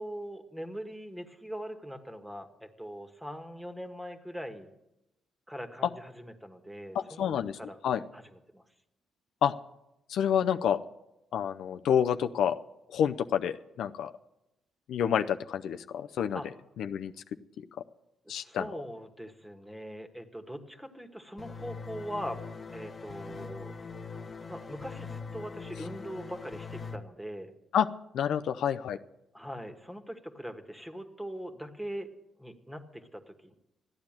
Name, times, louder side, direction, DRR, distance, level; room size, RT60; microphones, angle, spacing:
voice 1, 0.0-4.7 5.5-7.3 7.5-7.8 8.1-8.6 16.3-16.5 18.2-22.4 22.7-23.7 24.5-27.5 29.3-32.1 32.4-33.5, equal, 5° right, 7 dB, 1.7 m, -41 dB
voice 2, 6.9-7.6 7.8-8.0 9.4-9.5 10.1-10.8 11.3-12.6 12.9-14.1 14.9-16.4 16.8-17.1 18.3-18.7 27.7-27.9 28.1-29.0, left 8 dB, 75° left, 8 dB, 0.6 m, -28 dB
sound 1, 21.4-27.0, left 4 dB, 35° left, 1.9 m, -42 dB
13.5 x 9.8 x 8.9 m, 0.90 s
cardioid pair, 90°, 0 cm